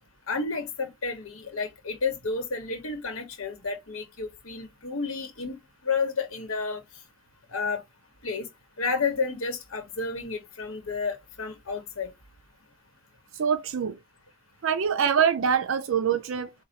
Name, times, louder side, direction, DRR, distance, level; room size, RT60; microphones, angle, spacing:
voice 1, 0.3-5.6 5.8-6.8 7.5-7.8 8.2-8.5 8.8-12.1, left 4 dB, 85° left, 1.1 m, -31 dB
voice 2, 13.3-14.0 14.6-16.5, right 7 dB, 70° right, 0.4 m, -24 dB
4.3 x 2.3 x 2.8 m
head